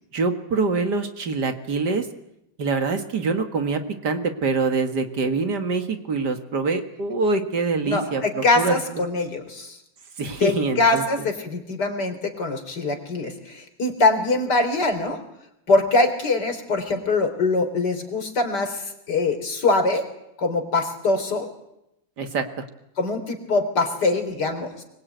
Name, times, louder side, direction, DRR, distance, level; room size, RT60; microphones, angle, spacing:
voice 1, 0.1-2.1 2.6-8.8 10.2-11.0 22.2-22.4, right 4 dB, 60° right, 7 dB, 2.4 m, -25 dB
voice 2, 7.8-9.8 10.4-15.2 15.7-20.0 20.4-21.5 23.0-24.8, left 3 dB, 60° left, 6 dB, 4.1 m, -23 dB
24.0 x 22.0 x 9.3 m, 0.84 s
omnidirectional pair, 2.0 m